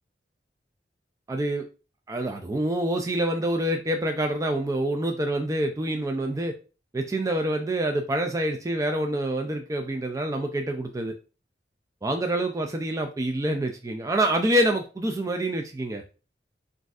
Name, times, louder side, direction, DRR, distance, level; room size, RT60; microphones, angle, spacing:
voice 1, 1.3-1.6 2.1-6.5 6.9-11.1 12.0-16.0, right 1 dB, 20° right, 4 dB, 0.3 m, -26 dB
6.1 x 2.6 x 2.4 m, 0.34 s
head